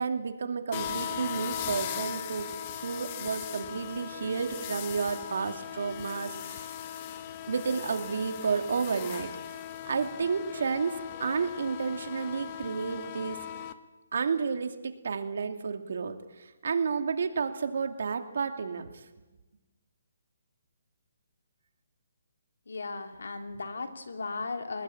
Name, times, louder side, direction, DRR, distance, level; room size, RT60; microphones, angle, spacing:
voice 1, 0.0-2.5 2.8-6.7 7.5-13.4 14.1-19.0, right 5 dB, 65° right, 7 dB, 2.5 m, -31 dB
sound 1, 0.7-13.7, left 10 dB, 30° left, 1.2 m, -39 dB
voice 2, 22.7-24.8, left 3 dB, 85° left, 6 dB, 3.2 m, -36 dB
21.0 x 20.0 x 8.8 m, 1.1 s
hypercardioid pair, 160°, 0 cm